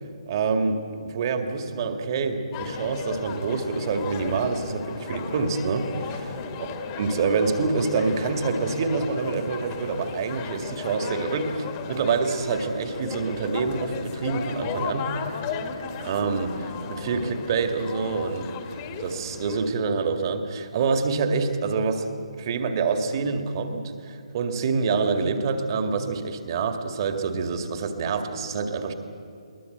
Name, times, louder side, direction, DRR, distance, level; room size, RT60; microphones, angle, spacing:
voice 1, 0.3-6.4 7.0-15.1 16.0-18.5 19.0-22.0 22.4-28.9, right 4 dB, 40° right, 6 dB, 2.2 m, -26 dB
sound 1, 2.5-19.7, left 5 dB, 25° left, 1.7 m, -35 dB
22.0 x 19.5 x 8.1 m, 2.6 s
figure-of-eight pair, 145°, 4 cm